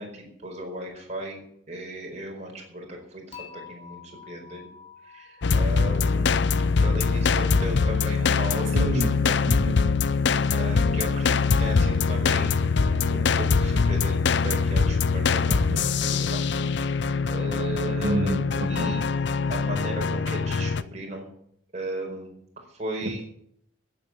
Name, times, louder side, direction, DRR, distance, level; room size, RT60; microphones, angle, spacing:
voice 1, 0.0-1.4 1.7-4.7 5.0-6.4 6.8-9.4 10.5-16.4 17.2-18.3 18.6-19.1 19.5-21.3 21.7-23.2, right 1 dB, 35° right, 0 dB, 4.8 m, -36 dB
Dishes pots and pans / Chink clink, 3.3-6.5, left 7 dB, 30° left, 3.6 m, -47 dB
sound 1, 5.4-20.8, left 4 dB, 55° left, 0.5 m, -23 dB
voice 2, 8.7-9.1 9.5-9.8 15.7-15.8 18.0-19.0 23.0-23.2, equal, 60° right, 2 dB, 1.6 m, -28 dB
14.5 x 8.8 x 8.0 m, 0.70 s
head